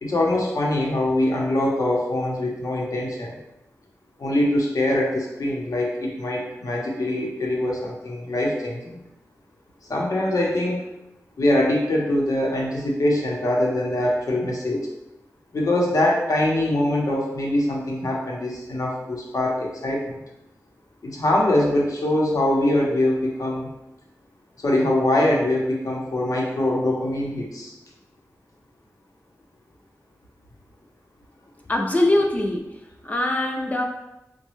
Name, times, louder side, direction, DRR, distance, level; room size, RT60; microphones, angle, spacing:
voice 1, 0.0-3.4 4.2-9.0 9.9-10.8 11.4-14.9 15.5-20.2 21.0-23.7 24.6-27.7, left 1 dB, 75° left, -2 dB, 0.8 m, -23 dB
voice 2, 31.7-32.6 33.0-33.8, left 1 dB, 25° left, 2 dB, 0.4 m, -22 dB
4.0 x 2.2 x 3.1 m, 0.92 s
wide cardioid pair, 75°, 6 cm